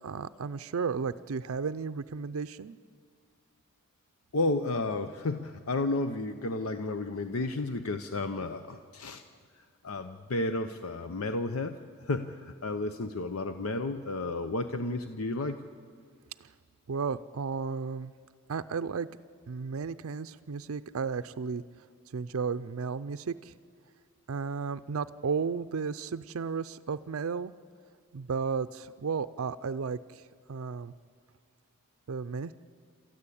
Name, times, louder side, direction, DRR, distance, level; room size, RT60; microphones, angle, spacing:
voice 1, 0.0-2.8 16.9-18.1 18.5-19.1 19.5-21.6 22.1-23.5 24.3-27.5 28.1-30.2 30.5-30.9 32.1-32.5, right 5 dB, 70° right, 12 dB, 0.5 m, -33 dB
voice 2, 4.3-9.2 9.6-15.6, left 2 dB, 75° left, 9 dB, 0.8 m, -32 dB
28.5 x 13.5 x 8.5 m, 2.1 s
head